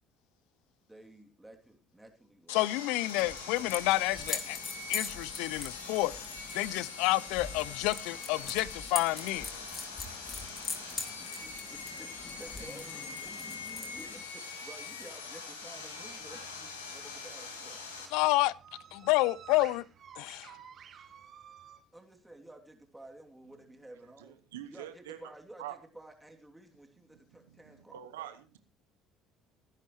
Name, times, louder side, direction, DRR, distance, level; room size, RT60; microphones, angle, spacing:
voice 1, 0.9-2.7 3.0-3.4 11.1-17.8 21.9-24.4 24.7-28.3, right 1 dB, 10° right, 2.9 m, -53 dB
Sawing, 2.5-18.1, left 4 dB, 90° left, 2.6 m, -43 dB
voice 2, 2.5-4.6 4.9-6.1 6.5-9.5 18.1-18.5 18.9-19.8 20.2-20.5, left 19 dB, 70° left, 0.5 m, -29 dB
sound 1, 3.1-14.2, left 4 dB, 30° left, 2.5 m, -42 dB
sound 2, 9.7-21.8, right 8 dB, 50° right, 1.9 m, -56 dB
voice 3, 24.2-25.3 25.6-25.8 27.3-28.6, right 12 dB, 80° right, 1.0 m, -45 dB
19.5 x 10.5 x 3.1 m
hypercardioid pair, 60°, 0 cm